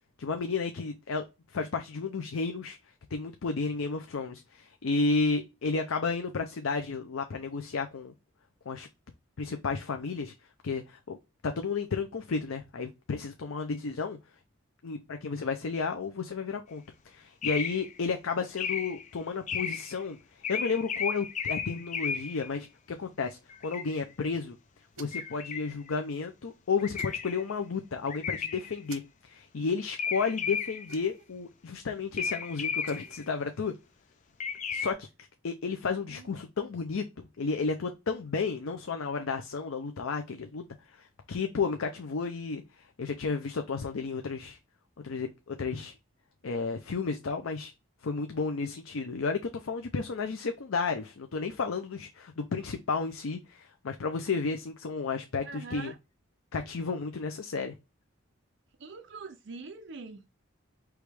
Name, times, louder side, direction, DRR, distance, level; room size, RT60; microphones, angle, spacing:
voice 1, 0.2-2.8 3.1-8.1 8.7-8.9 9.4-10.3 10.6-11.2 11.4-14.2 14.8-22.7 23.0-24.6 25.0-29.0 29.3-33.7 34.7-35.1 35.4-44.6 45.0-45.9 46.4-47.7 48.0-55.9 56.5-57.7, left 4 dB, 80° left, 0.6 m, -32 dB
sound 1, 17.4-18.0 18.6-19.1 19.5-20.0 20.4-22.5 23.5-24.0 25.1-25.9 26.8-27.5 28.1-28.8 30.0-31.0 32.2-33.2 34.4-34.9, left 6 dB, 35° left, 0.4 m, -34 dB
sound 2, 24.9-25.3 26.9-27.2 28.9-29.0 30.8-31.3 32.6-33.2, right 5 dB, 85° right, 0.8 m, -49 dB
voice 2, 55.4-56.0 58.8-60.3, right 4 dB, 55° right, 0.5 m, -43 dB
4.8 x 3.0 x 3.3 m
head